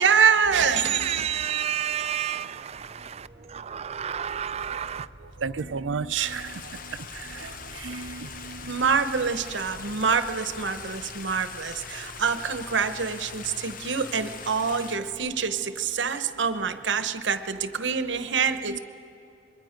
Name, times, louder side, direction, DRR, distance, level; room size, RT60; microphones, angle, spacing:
voice 1, 0.0-1.6 8.7-18.8, right 6 dB, 75° right, 0.9 m, -25 dB
voice 2, 0.5-5.1, right 9 dB, 35° right, 0.4 m, -32 dB
sound 1, 2.5-15.2, equal, ahead, 3.7 m, -49 dB
voice 3, 4.7-8.7 18.7-18.8, right 6 dB, 90° right, 0.5 m, -34 dB
Stream, 6.2-15.0, left 6 dB, 45° left, 0.8 m, -42 dB
26.5 x 22.0 x 5.2 m
head